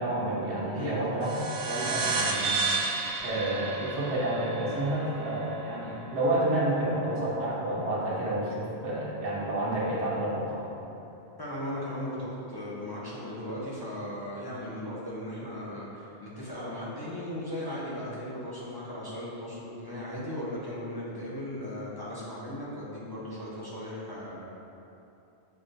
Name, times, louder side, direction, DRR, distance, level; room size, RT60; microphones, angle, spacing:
voice 1, 0.0-2.6 3.2-10.7, right 1 dB, 90° right, -6 dB, 1.0 m, -30 dB
sound 1, 1.2-6.1, right 4 dB, 50° right, 0.6 m, -32 dB
voice 2, 11.4-24.4, left 1 dB, 30° left, -8 dB, 0.5 m, -37 dB
6.3 x 2.2 x 2.5 m, 2.8 s
omnidirectional pair, 1.1 m